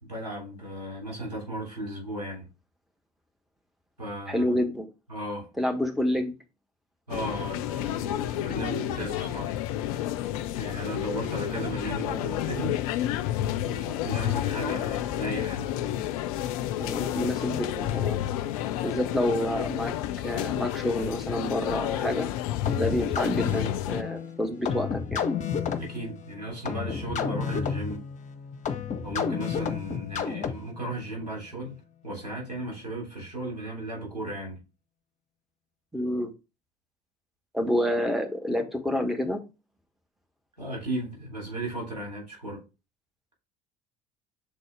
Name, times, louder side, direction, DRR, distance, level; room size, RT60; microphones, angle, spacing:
voice 1, 0.0-2.5 4.0-4.6 5.1-5.5 7.1-9.6 9.9-10.2 10.6-12.8 13.7-15.7 25.8-28.1 29.0-34.6 40.6-42.6, right 1 dB, 80° right, 3.5 m, -35 dB
voice 2, 4.3-4.9 5.6-6.3 16.8-18.2 18.8-19.9 20.2-22.3 22.8-25.3 35.9-36.3 37.5-39.4, left 1 dB, ahead, 1.2 m, -28 dB
sound 1, 7.1-24.0, left 12 dB, 60° left, 0.5 m, -30 dB
sound 2, 22.7-30.9, left 6 dB, 35° left, 0.9 m, -31 dB
6.9 x 4.1 x 3.4 m
figure-of-eight pair, 60°, 21 cm